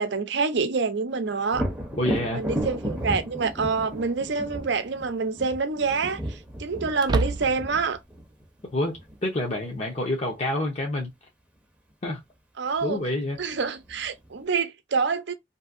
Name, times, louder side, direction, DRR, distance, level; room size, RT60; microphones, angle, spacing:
voice 1, 0.0-1.7 2.3-8.0 12.6-13.0 13.4-15.3, right 4 dB, 65° right, 0.6 m, -27 dB
Thunder, 1.5-9.2 12.8-12.9 13.4-14.3, equal, 10° right, 0.7 m, -34 dB
voice 2, 2.0-2.4 8.7-11.1 12.0-12.2 12.8-13.4, left 1 dB, 40° left, 0.7 m, -28 dB
sound 1, 2.4-2.5 4.3-4.7 5.1-5.2 7.0-7.9, right 3 dB, 25° right, 0.3 m, -28 dB
2.7 x 2.7 x 2.5 m
head